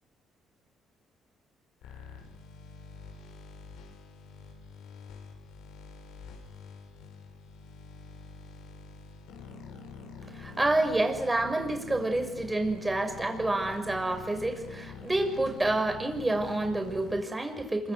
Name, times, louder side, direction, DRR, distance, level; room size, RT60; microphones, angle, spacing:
sound 1, 1.8-17.2, left 4 dB, 85° left, 6.8 m, -46 dB
voice 1, 10.3-17.9, right 2 dB, 15° right, 6 dB, 6.2 m, -28 dB
27.5 x 25.5 x 7.9 m, 0.87 s
cardioid pair, 85°, 0 cm